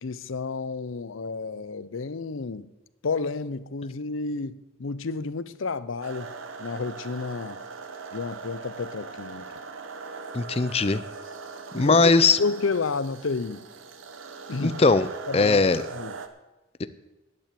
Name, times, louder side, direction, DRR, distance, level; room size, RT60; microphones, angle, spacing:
voice 1, 0.0-2.7 3.0-6.3 6.6-7.6 8.1-9.5 11.7-12.1 12.4-13.6 14.5-14.8 15.3-15.6 15.9-16.1, left 4 dB, 90° left, 0.6 m, -31 dB
sound 1, 6.0-16.3, right 4 dB, 90° right, 1.1 m, -40 dB
voice 2, 10.3-11.0 11.7-12.4 14.6-15.1 15.3-15.8 16.8-16.9, left 3 dB, 30° left, 0.5 m, -20 dB
10.5 x 8.7 x 8.5 m
head